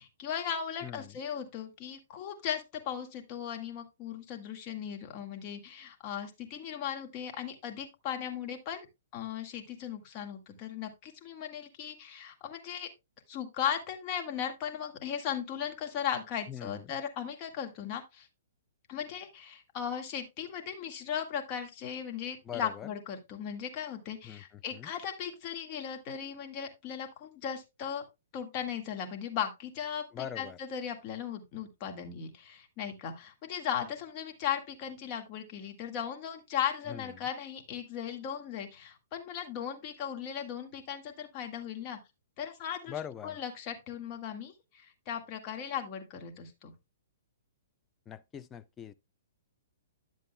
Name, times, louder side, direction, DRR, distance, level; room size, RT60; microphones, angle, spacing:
voice 1, 0.0-8.9 9.1-12.9 13.3-18.3 18.9-28.0 28.3-42.0 42.4-42.9 43.2-46.7, left 8 dB, 35° left, 1.8 m, -37 dB
voice 2, 0.8-1.2 16.5-16.9 22.5-22.9 24.2-24.4 24.7-24.9 30.1-30.6 36.9-37.1 42.9-43.4 48.1-48.9, left 9 dB, 20° left, 0.5 m, -42 dB
10.5 x 7.5 x 2.2 m
hypercardioid pair, 130°, 0 cm